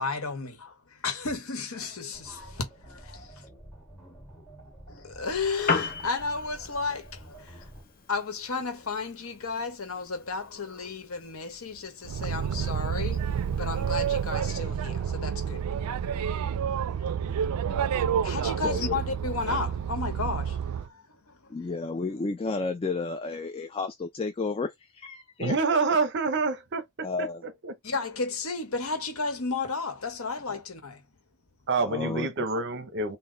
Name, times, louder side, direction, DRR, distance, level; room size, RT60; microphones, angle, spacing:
voice 1, 0.0-3.3 4.9-7.7 8.1-17.4 18.2-21.5 27.8-31.0, left 4 dB, 70° left, 1.1 m, -33 dB
sound 1, 2.1-7.8, right 1 dB, ahead, 1.9 m, -49 dB
Piano, 5.4-14.4, left 4 dB, 40° left, 0.7 m, -38 dB
Boat Water vehicle, 12.0-20.9, right 8 dB, 85° right, 0.3 m, -29 dB
voice 2, 18.6-19.0 21.5-25.5 27.0-27.4 30.5-30.6 31.8-32.3, left 3 dB, 25° left, 0.3 m, -32 dB
voice 3, 25.4-27.1 27.6-27.7 31.7-33.2, right 4 dB, 50° right, 0.7 m, -27 dB
3.8 x 2.1 x 3.8 m
head